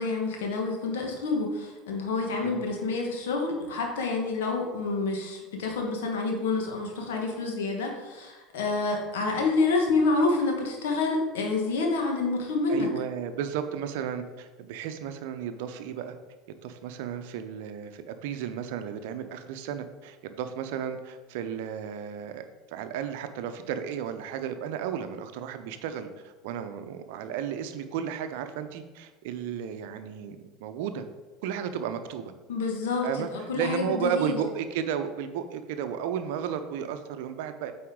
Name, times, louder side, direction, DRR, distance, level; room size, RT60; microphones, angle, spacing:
voice 1, 0.0-12.9 32.5-33.0 33.3-34.4, left 3 dB, 75° left, 2 dB, 1.3 m, -28 dB
voice 2, 12.7-16.1 16.6-31.1 31.4-32.3 33.0-37.7, right 8 dB, 65° right, 9 dB, 0.6 m, -33 dB
8.4 x 4.3 x 3.7 m, 1.2 s
hypercardioid pair, 75°, 0 cm